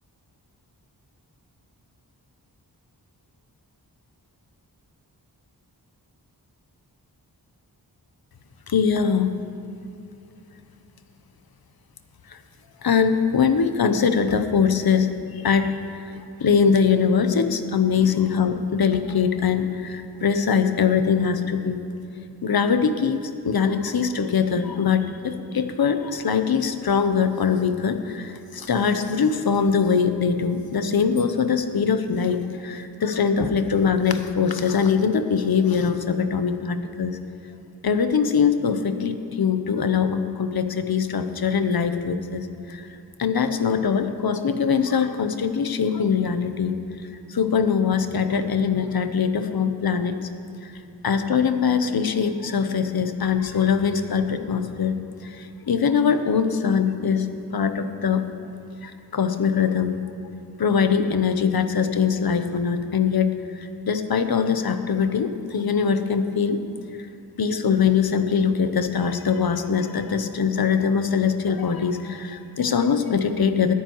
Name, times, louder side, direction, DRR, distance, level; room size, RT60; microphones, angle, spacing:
voice 1, 8.7-9.3 12.3-12.4 12.8-15.1 15.4-15.7 16.0-21.8 22.4-37.2 37.8-42.9 43.2-46.8 47.3-50.2 50.6-50.7 51.0-57.3 57.5-58.2 58.8-60.0 60.6-66.6 67.4-73.7, left 6 dB, 65° left, 9 dB, 0.8 m, -22 dB
19.5 x 9.4 x 3.1 m, 2.7 s
wide cardioid pair, 70°, 40 cm